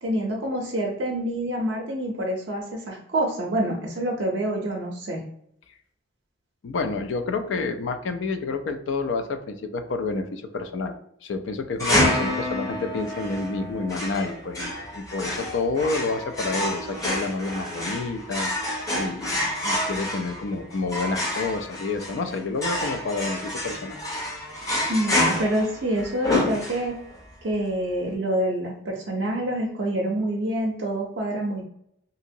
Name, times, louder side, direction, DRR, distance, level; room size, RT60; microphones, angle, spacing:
voice 1, 0.0-5.2 24.9-27.0 27.4-31.6, right 1 dB, 60° right, -1 dB, 0.5 m, -27 dB
voice 2, 6.6-11.0 11.2-24.0, left 3 dB, 70° left, 7 dB, 0.3 m, -29 dB
sound 1, 11.8-27.1, left 1 dB, 15° left, 0.6 m, -28 dB
2.8 x 2.7 x 2.6 m, 0.72 s
head